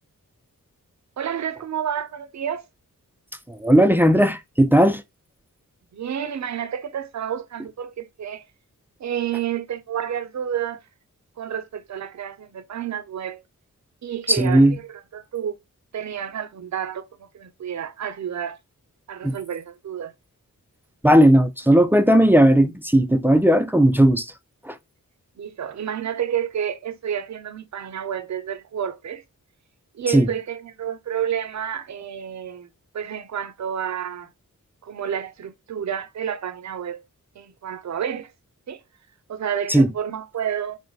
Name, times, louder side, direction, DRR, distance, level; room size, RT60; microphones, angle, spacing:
voice 1, 1.2-2.7 5.9-8.4 9.0-10.8 11.4-13.4 14.0-15.6 15.9-18.6 19.1-20.1 25.4-29.2 29.9-32.7 32.9-34.3 34.8-37.0 37.4-38.3 38.7-38.8 39.3-40.8, right 9 dB, 55° right, 0.5 m, -30 dB
voice 2, 3.5-5.0 14.3-14.8 19.2-19.4 21.0-24.3 24.7-24.8 30.1-30.3 39.7-39.9, right 1 dB, 5° right, 0.3 m, -16 dB
3.1 x 2.1 x 3.9 m
wide cardioid pair, 70°, 34 cm